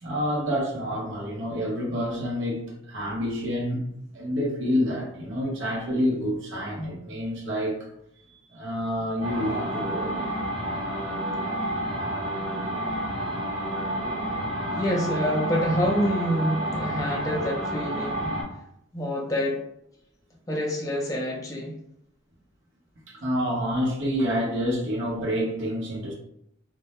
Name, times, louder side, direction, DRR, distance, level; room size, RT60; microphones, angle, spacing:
voice 1, 0.0-3.8 4.1-7.8 8.5-10.2 23.1-26.1, equal, 65° right, -3 dB, 0.7 m, -28 dB
sound 1, 9.2-18.4, right 1 dB, 35° right, 0.7 m, -30 dB
voice 2, 14.8-18.4 18.9-19.6 20.5-21.7, equal, 15° left, -1 dB, 0.3 m, -27 dB
2.1 x 2.1 x 2.8 m, 0.75 s
head